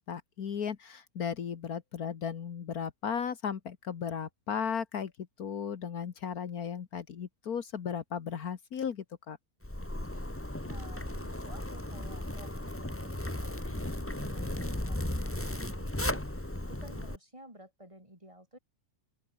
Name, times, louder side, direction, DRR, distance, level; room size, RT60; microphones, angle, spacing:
voice 1, 0.0-5.1 5.4-9.4, left 7 dB, 70° left, 1.8 m, -35 dB
Zipper (clothing), 9.6-17.2, left 1 dB, 10° left, 1.7 m, -35 dB
voice 2, 10.4-18.6, right 1 dB, 20° right, 6.5 m, -53 dB
open air
omnidirectional pair, 1.7 m